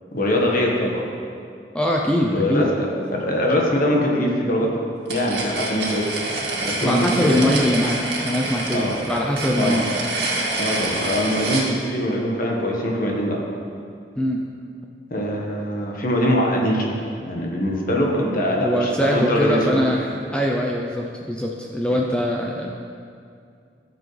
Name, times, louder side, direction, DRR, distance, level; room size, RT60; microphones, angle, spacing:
voice 1, 0.1-1.0 2.3-2.7 3.1-4.7 5.1-6.1 6.6-7.4 8.7-9.0 9.6-9.8 10.6-13.4 15.1-19.8 21.9-22.0, equal, 55° left, -1 dB, 1.5 m, -22 dB
voice 2, 1.7-2.7 6.8-9.8 14.2-14.4 18.6-22.7, equal, 5° left, -1 dB, 0.6 m, -22 dB
sound 1, 5.1-11.7, right 2 dB, 80° right, 2.1 m, -27 dB
14.0 x 7.2 x 3.3 m, 2.4 s
head